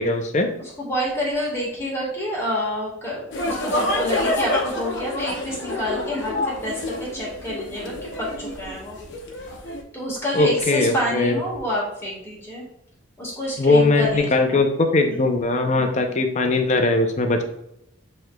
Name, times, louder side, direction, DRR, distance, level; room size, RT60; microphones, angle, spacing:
voice 1, 0.0-0.5 10.3-11.4 13.6-17.4, left 2 dB, 35° left, 5 dB, 0.5 m, -20 dB
voice 2, 0.6-6.3 6.6-9.0 9.9-12.6 13.2-14.6 15.1-15.3, equal, 15° left, -5 dB, 1.5 m, -28 dB
sound 1, 3.3-9.8, left 1 dB, 55° left, 0.8 m, -28 dB
7.5 x 3.1 x 2.2 m, 0.78 s
head